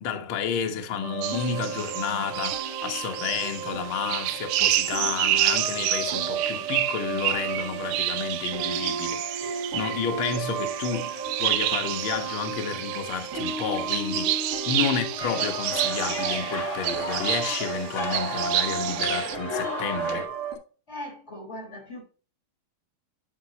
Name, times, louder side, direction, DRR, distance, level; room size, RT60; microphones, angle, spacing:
voice 1, 0.0-11.1 11.4-20.2, left 6 dB, 80° left, 1.1 m, -31 dB
sound 1, 1.0-20.6, right 4 dB, 60° right, 3.4 m, -34 dB
sound 2, 1.2-19.4, right 13 dB, 90° right, 2.5 m, -29 dB
voice 2, 14.7-15.2 20.9-22.0, left 1 dB, 20° left, 3.6 m, -39 dB
sound 3, 15.2-20.3, left 3 dB, 60° left, 0.8 m, -34 dB
11.0 x 4.9 x 2.9 m
omnidirectional pair, 4.2 m